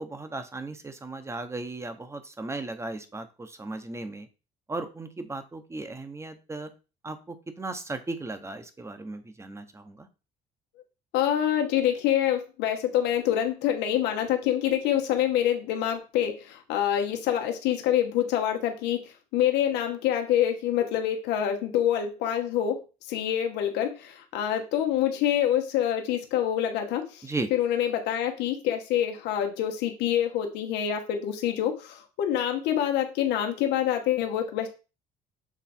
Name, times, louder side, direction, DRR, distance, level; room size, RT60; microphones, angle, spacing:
voice 1, 0.0-4.3 4.7-6.7 7.0-10.1 27.2-27.5, right 2 dB, 15° right, 9 dB, 0.9 m, -36 dB
voice 2, 11.1-22.8 23.1-34.7, left 10 dB, 90° left, 4 dB, 1.2 m, -26 dB
7.2 x 3.4 x 4.3 m, 0.32 s
cardioid pair, 110°, 17 cm